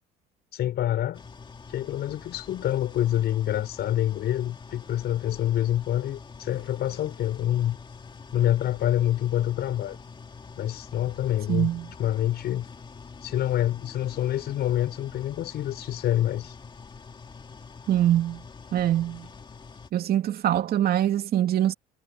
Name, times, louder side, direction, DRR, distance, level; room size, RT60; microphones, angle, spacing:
voice 1, 0.5-1.2 1.7-7.8 8.3-10.0 10.6-11.7 12.0-12.6 13.2-16.6, left 12 dB, 60° left, 6.1 m, -26 dB
sound 1, 1.1-19.9, left 5 dB, 25° left, 2.6 m, -45 dB
voice 2, 11.5-11.9 17.9-18.4 18.7-19.3 19.9-21.7, right 12 dB, 55° right, 2.7 m, -23 dB
cardioid pair, 105°, 19 cm